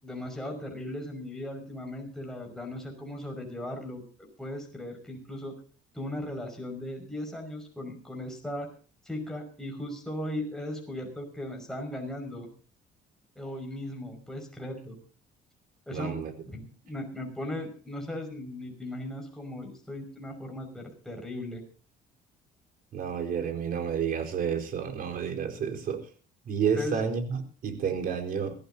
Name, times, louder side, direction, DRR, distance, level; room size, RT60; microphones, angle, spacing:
voice 1, 0.0-5.6 5.9-8.7 9.0-12.5 13.4-15.0 15.9-21.6 26.8-27.0, left 1 dB, 5° left, 2 dB, 5.6 m, -37 dB
voice 2, 15.9-16.3 22.9-26.1 26.5-28.5, right 7 dB, 60° right, 4 dB, 4.4 m, -30 dB
23.0 x 15.5 x 2.8 m, 0.40 s
cardioid pair, 110°, 17 cm